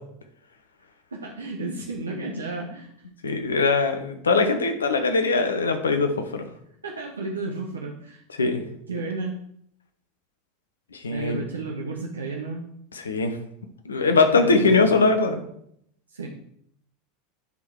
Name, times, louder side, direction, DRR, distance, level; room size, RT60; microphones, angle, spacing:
voice 1, 1.1-2.9 6.8-8.2 8.9-9.4 11.1-12.7 14.4-15.0 16.1-16.3, right 3 dB, 80° right, 1 dB, 0.8 m, -32 dB
voice 2, 3.2-6.5 8.4-8.6 10.9-11.4 12.9-13.4 13.8-15.4, left 3 dB, 75° left, 7 dB, 0.8 m, -21 dB
9.4 x 3.9 x 4.4 m, 0.70 s
figure-of-eight pair, 80°, 0 cm